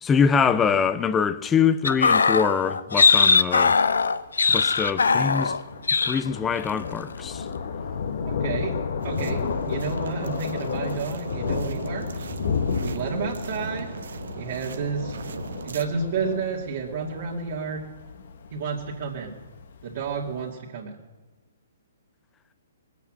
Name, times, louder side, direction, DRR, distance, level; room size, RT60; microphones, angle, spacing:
voice 1, 0.0-3.8 4.5-5.5 6.1-7.5, left 6 dB, 15° left, 0.5 m, -23 dB
sound 1, 1.8-5.6 5.9-6.2 6.5-6.8, left 5 dB, 90° left, 0.6 m, -20 dB
Thunder, 3.8-20.4, left 6 dB, 65° left, 1.2 m, -32 dB
voice 2, 8.3-8.8 9.0-12.3 12.8-13.9 14.4-15.2 15.6-17.8 18.5-19.3 19.8-21.0, right 5 dB, 55° right, 2.2 m, -31 dB
sound 2, 9.0-15.9, right 5 dB, 75° right, 0.8 m, -38 dB
19.0 x 8.3 x 7.6 m
hypercardioid pair, 145°, 0 cm